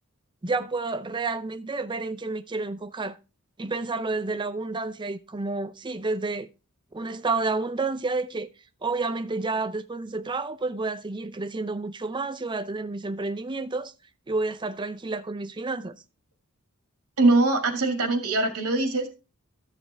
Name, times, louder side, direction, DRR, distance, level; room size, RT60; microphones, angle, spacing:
voice 1, 0.4-3.2 3.6-6.5 6.9-8.5 8.8-13.9 14.3-16.0, right 3 dB, 20° right, 0.6 m, -30 dB
voice 2, 17.2-19.1, right 2 dB, 80° right, 2.2 m, -22 dB
13.0 x 6.7 x 3.4 m
head